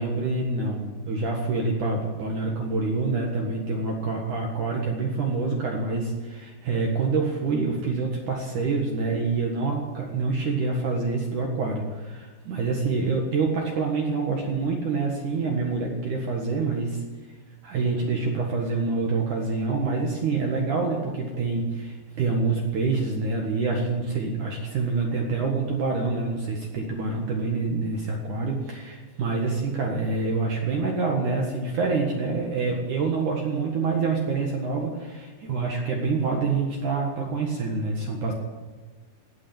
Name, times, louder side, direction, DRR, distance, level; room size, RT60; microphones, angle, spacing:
voice 1, 0.0-17.0 17.6-38.3, right 4 dB, 60° right, 0 dB, 2.2 m, -26 dB
17.5 x 8.7 x 8.9 m, 1.3 s
omnidirectional pair, 6.0 m